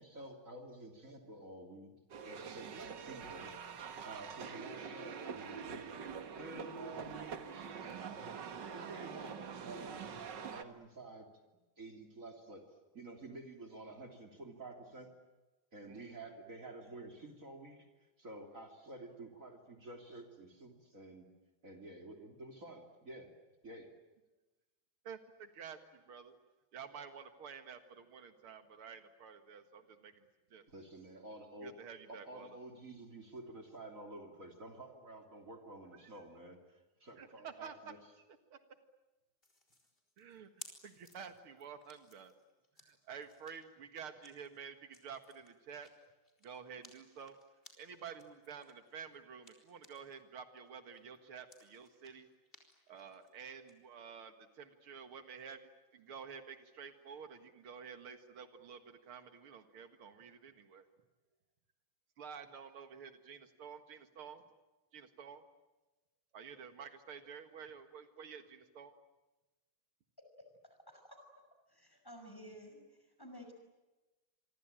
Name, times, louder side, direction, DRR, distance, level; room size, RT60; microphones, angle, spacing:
voice 1, 0.0-1.9 2.2-3.6 4.0-8.0 8.7-10.0 10.4-11.3 11.8-12.7 12.9-15.1 15.7-17.9 18.2-21.3 21.6-23.3 23.6-23.9 30.7-31.8 32.1-38.0, right 2 dB, 40° right, 3 dB, 3.5 m, -50 dB
sound 1, 2.1-10.6, right 6 dB, 60° right, 2.1 m, -45 dB
voice 2, 15.8-16.2 25.0-26.3 26.7-30.6 31.6-32.6 37.2-37.7 38.5-38.6 40.2-40.5 40.8-42.3 42.8-45.9 46.4-47.4 47.8-52.3 52.9-60.9 62.2-64.4 64.9-65.4 66.3-68.9, right 6 dB, 85° right, 8 dB, 2.6 m, -50 dB
sound 2, 39.4-50.2 50.6-53.7, left 2 dB, 25° left, 4.3 m, -61 dB
voice 3, 70.4-71.2 71.7-73.5, equal, 10° left, 4 dB, 5.8 m, -54 dB
27.0 x 24.5 x 8.9 m, 1.1 s
omnidirectional pair, 2.3 m